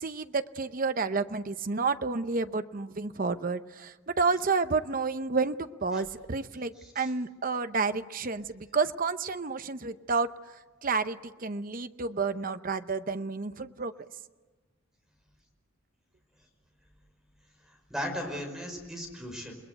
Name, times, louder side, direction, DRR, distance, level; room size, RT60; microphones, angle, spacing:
voice 1, 0.0-14.1, right 4 dB, 40° right, 10 dB, 0.8 m, -30 dB
voice 2, 6.8-7.1 17.6-19.5, equal, ahead, 1 dB, 5.3 m, -37 dB
29.5 x 20.5 x 8.0 m, 1.3 s
head